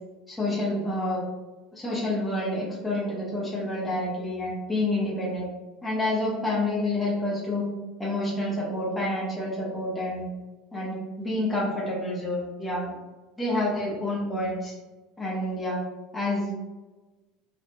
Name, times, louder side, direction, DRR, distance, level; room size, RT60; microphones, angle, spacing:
voice 1, 0.3-1.2 1.7-5.4 5.8-7.7 8.0-10.3 10.7-12.9 13.4-14.7 15.2-15.8 16.1-16.5, left 1 dB, 5° left, -7 dB, 0.7 m, -28 dB
3.1 x 2.3 x 2.6 m, 1.2 s
cardioid pair, 160°, 0 cm